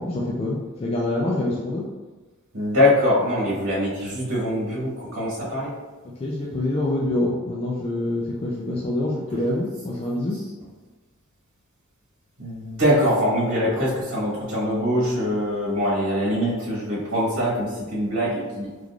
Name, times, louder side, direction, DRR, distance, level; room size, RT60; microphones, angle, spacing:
voice 1, 0.0-1.8 6.2-10.4, left 1 dB, 25° left, -4 dB, 0.4 m, -26 dB
voice 2, 2.5-5.7 12.4-18.7, left 1 dB, 65° right, -6 dB, 1.3 m, -23 dB
3.7 x 3.2 x 2.3 m, 1.3 s
head